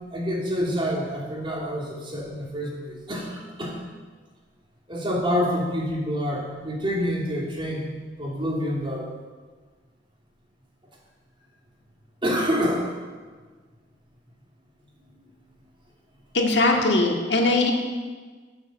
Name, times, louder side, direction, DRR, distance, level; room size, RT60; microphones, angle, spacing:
voice 1, 0.1-3.8 4.9-9.1 12.2-13.0 15.1-15.3, equal, 25° right, -3 dB, 3.0 m, -27 dB
voice 2, 16.3-17.7, left 2 dB, 65° left, 1 dB, 2.1 m, -20 dB
19.0 x 7.2 x 6.9 m, 1.5 s
head